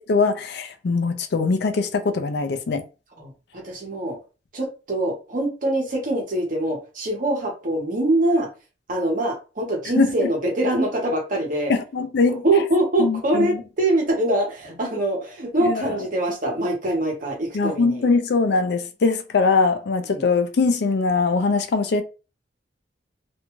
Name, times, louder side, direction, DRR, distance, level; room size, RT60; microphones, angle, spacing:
voice 1, 0.1-2.8 10.0-10.3 11.7-12.4 13.0-13.6 15.6-16.0 17.5-22.0, left 4 dB, 65° left, 0.4 m, -21 dB
voice 2, 3.2-4.2 4.5-8.5 8.9-11.7 12.2-18.1 20.1-20.2, right 1 dB, 50° right, 1.0 m, -24 dB
2.6 x 2.3 x 3.0 m
head